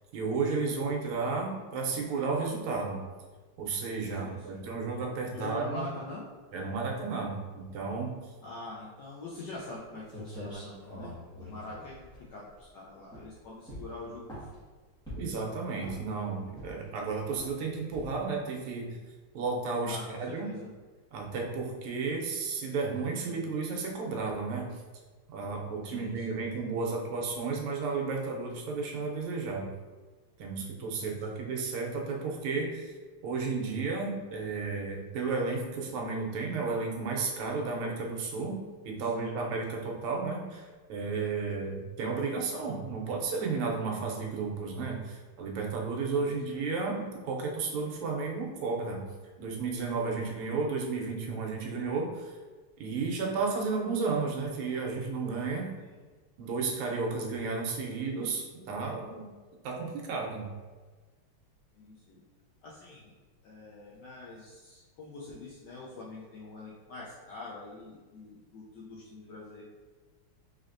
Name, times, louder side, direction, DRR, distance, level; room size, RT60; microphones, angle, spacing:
voice 1, 0.1-3.0 3.6-5.9 6.5-8.2 15.2-19.0 19.3-20.5 21.1-24.7 25.3-29.7 30.4-32.9 33.2-38.6 38.8-49.0 49.4-52.3 52.8-55.7 56.4-59.3 59.6-60.5, right 4 dB, 80° right, 0 dB, 1.6 m, -33 dB
voice 2, 4.1-4.7 5.3-6.3 8.4-14.5 19.8-20.7 25.8-26.5 31.0-31.4 39.0-39.5 46.3-46.4 61.7-62.2 62.6-63.1 63.4-69.6, left 2 dB, 75° left, -5 dB, 1.0 m, -44 dB
sound 1, 10.1-12.7 13.1-13.3 13.7-14.6 15.1-15.4 15.8-16.2 16.5-16.9 17.3-17.5 17.9-18.3, equal, 5° left, 0.8 m, -44 dB
3.9 x 3.3 x 2.5 m, 1.3 s
omnidirectional pair, 2.4 m